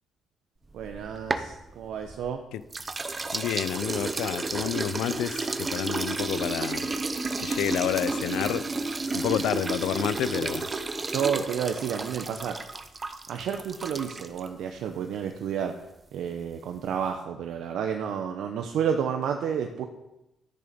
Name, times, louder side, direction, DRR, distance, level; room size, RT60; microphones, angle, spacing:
sound 1, 0.7-2.3 2.7-14.5, right 3 dB, 30° right, 0.8 m, -32 dB
voice 1, 0.7-2.4 11.1-12.6 13.3-15.7 16.1-19.9, right 7 dB, 80° right, 0.8 m, -30 dB
voice 2, 3.3-6.8 7.4-8.6 9.1-10.7, left 11 dB, 90° left, 0.5 m, -29 dB
12.0 x 6.9 x 5.2 m
cardioid pair, 90°, 0 cm